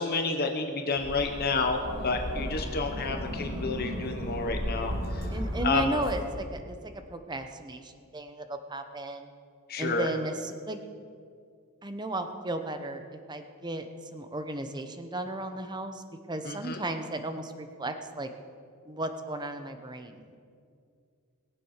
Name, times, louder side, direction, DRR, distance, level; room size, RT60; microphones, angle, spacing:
voice 1, 0.0-4.9 5.6-5.9 9.7-10.1 16.5-16.8, left 4 dB, 45° left, 4 dB, 1.0 m, -29 dB
sound 1, 1.0-6.2, equal, 50° right, 2.9 m, -34 dB
voice 2, 5.3-9.3 9.8-10.8 11.8-18.3 18.9-20.5, right 2 dB, 20° right, 7 dB, 0.9 m, -35 dB
21.0 x 7.7 x 6.6 m, 2.3 s
head